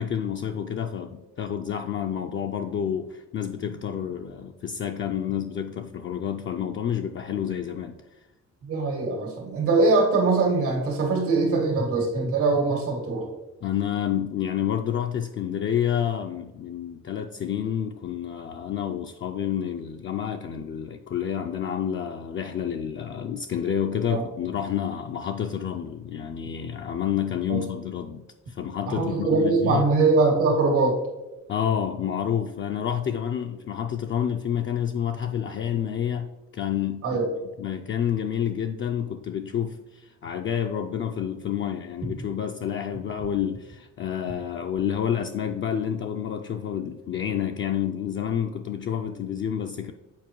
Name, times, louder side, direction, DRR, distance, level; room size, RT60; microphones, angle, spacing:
voice 1, 0.0-8.0 13.6-29.8 31.5-37.3 37.6-49.9, left 9 dB, 40° left, 4 dB, 0.4 m, -29 dB
voice 2, 8.6-13.3 24.1-24.2 27.5-27.6 28.9-31.0 37.0-37.3, right 3 dB, 85° right, 0 dB, 1.9 m, -22 dB
7.1 x 4.4 x 3.0 m, 1.0 s
cardioid pair, 90°, 30 cm